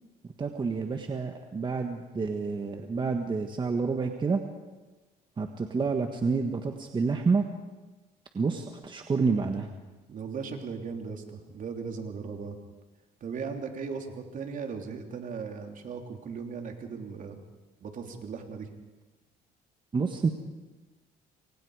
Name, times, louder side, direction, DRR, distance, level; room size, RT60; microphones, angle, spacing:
voice 1, 0.4-4.4 5.4-7.4 8.3-9.7 19.9-20.3, right 4 dB, 30° right, 5 dB, 1.6 m, -28 dB
voice 2, 10.1-12.6 13.2-17.4 17.8-18.7, right 5 dB, 50° right, 4 dB, 3.3 m, -37 dB
28.5 x 24.5 x 5.0 m, 1.2 s
cardioid pair, 110°, 17 cm